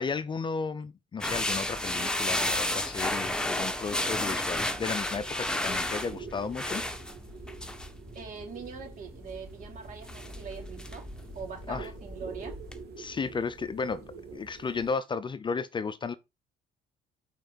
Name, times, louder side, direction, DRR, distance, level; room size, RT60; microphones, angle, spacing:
voice 1, 0.0-6.8 11.7-11.9 13.0-16.1, left 5 dB, 30° left, 0.5 m, -34 dB
sound 1, 1.2-12.8, left 1 dB, 5° left, 1.3 m, -33 dB
sound 2, 3.2-15.0, right 5 dB, 70° right, 2.7 m, -47 dB
voice 2, 8.1-11.1 11.3-12.6, right 5 dB, 50° right, 3.4 m, -42 dB
5.9 x 4.4 x 5.5 m
cardioid pair, 110°, 17 cm